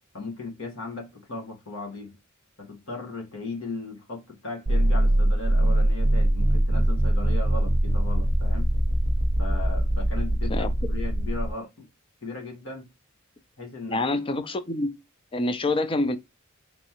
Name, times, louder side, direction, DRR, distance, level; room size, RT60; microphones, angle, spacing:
voice 1, 0.1-2.1 2.6-8.7 9.4-11.9 12.2-12.9 13.6-14.0, left 3 dB, 70° left, 1.4 m, -37 dB
sound 1, 4.7-11.5, right 1 dB, 30° right, 0.7 m, -22 dB
voice 2, 10.5-10.9 13.9-14.9 15.3-16.2, left 2 dB, 25° left, 0.4 m, -26 dB
3.5 x 3.0 x 2.8 m
head